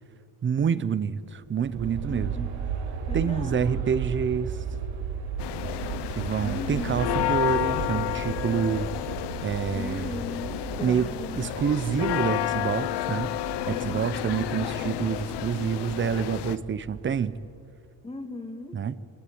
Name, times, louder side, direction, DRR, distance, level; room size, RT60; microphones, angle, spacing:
voice 1, 0.4-2.5 3.1-4.6 6.1-8.9 9.4-10.2 10.8-13.3 13.7-17.4 18.7-19.0, right 7 dB, 25° right, 16 dB, 0.7 m, -27 dB
Aircraft, 1.5-17.5, right 6 dB, 80° right, 6.4 m, -36 dB
voice 2, 1.8-2.8 3.1-3.8 6.4-7.1 9.7-11.5 13.7-14.6 18.0-18.8, left 2 dB, 15° left, 6 dB, 2.2 m, -38 dB
sound 1, 5.4-16.6, left 14 dB, 65° left, 1.0 m, -31 dB
27.5 x 19.5 x 8.6 m, 2.2 s
cardioid pair, 165°, 44 cm